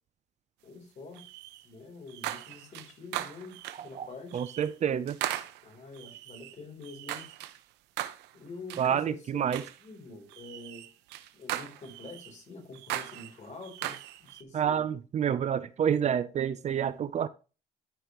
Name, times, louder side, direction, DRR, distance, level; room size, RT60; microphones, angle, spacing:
voice 1, 0.6-1.2 1.6-3.6 3.8-4.4 5.6-7.3 8.3-9.5 9.8-10.9 11.3-14.8, left 3 dB, 45° left, 3.8 m, -46 dB
sound 1, 1.2-1.7 2.1-3.9 4.3-4.7 5.1-7.6 8.0-8.3 8.7-8.9 9.5-9.8 10.3-12.3 12.7-14.4, right 14 dB, 90° right, 0.8 m, -38 dB
voice 2, 4.3-5.2 8.8-9.6 14.5-17.3, right 8 dB, 45° right, 0.6 m, -28 dB
12.5 x 5.3 x 3.1 m
cardioid pair, 110°, 17 cm